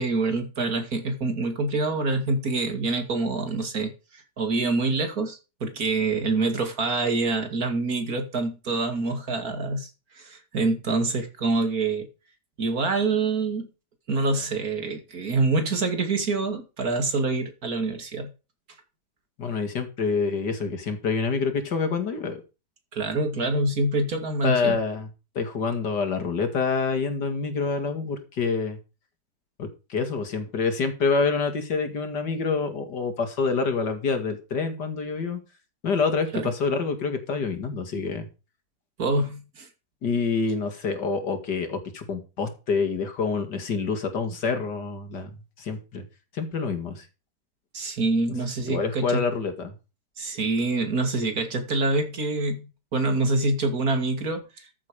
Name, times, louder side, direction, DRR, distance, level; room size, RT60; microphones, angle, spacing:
voice 1, 0.0-9.9 10.2-12.1 12.6-13.7 14.1-18.3 22.9-24.8 36.3-36.5 39.0-39.7 47.7-49.2 50.2-54.7, right 3 dB, 60° right, 2.7 m, -26 dB
voice 2, 19.4-22.4 24.4-25.1 25.3-28.8 29.6-35.4 35.8-38.3 40.0-45.3 45.6-46.0 46.3-47.0 48.7-49.7, left 4 dB, 80° left, 2.7 m, -27 dB
14.0 x 7.4 x 4.9 m
omnidirectional pair, 1.8 m